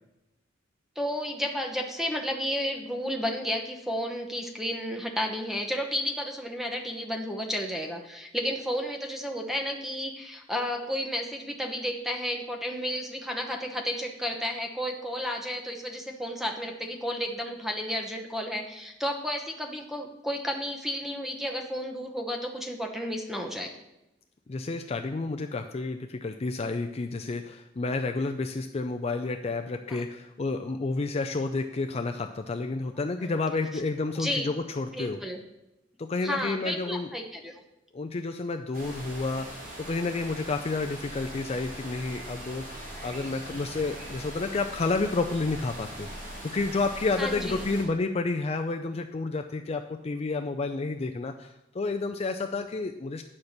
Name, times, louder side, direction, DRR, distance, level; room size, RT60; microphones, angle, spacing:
voice 1, 1.0-23.7 29.9-30.0 33.2-33.3 34.2-34.5 34.9-35.4 36.2-37.5 47.2-47.7, equal, ahead, 2 dB, 1.0 m, -32 dB
voice 2, 24.5-35.2 36.0-37.1 37.9-46.1 46.5-53.2, left 3 dB, 35° left, 5 dB, 0.4 m, -30 dB
sound 1, 38.7-47.8, right 1 dB, 45° right, 3.1 m, -41 dB
9.7 x 4.4 x 6.5 m, 0.93 s
head